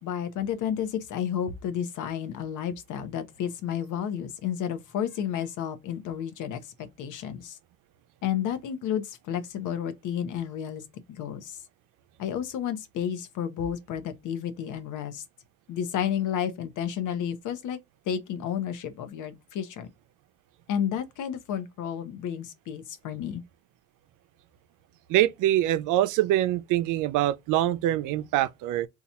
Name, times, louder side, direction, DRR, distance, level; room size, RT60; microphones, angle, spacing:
voice 1, 0.0-7.6 8.2-10.8 11.1-11.6 12.2-15.2 15.7-17.8 18.1-19.9 20.7-23.4, left 9 dB, 85° left, 0.8 m, -31 dB
voice 2, 25.1-28.9, right 13 dB, 90° right, 0.5 m, -24 dB
2.8 x 2.3 x 4.1 m
cardioid pair, 90°, 30 cm